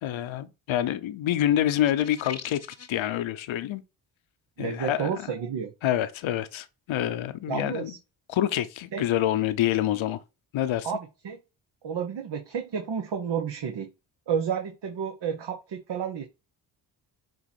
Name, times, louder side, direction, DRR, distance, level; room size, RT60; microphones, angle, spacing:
voice 1, 0.0-2.6 2.9-3.8 4.6-5.1 5.8-7.9 8.3-10.2 10.5-10.9, left 12 dB, 75° left, 1.0 m, -27 dB
sound 1, 1.7-3.0, left 6 dB, 35° left, 0.9 m, -42 dB
voice 2, 4.6-5.7 7.5-8.0 8.9-9.0 10.8-11.4 11.8-13.9 14.3-16.3, right 7 dB, 60° right, 1.4 m, -31 dB
7.9 x 3.0 x 4.5 m
supercardioid pair, 60°, 47 cm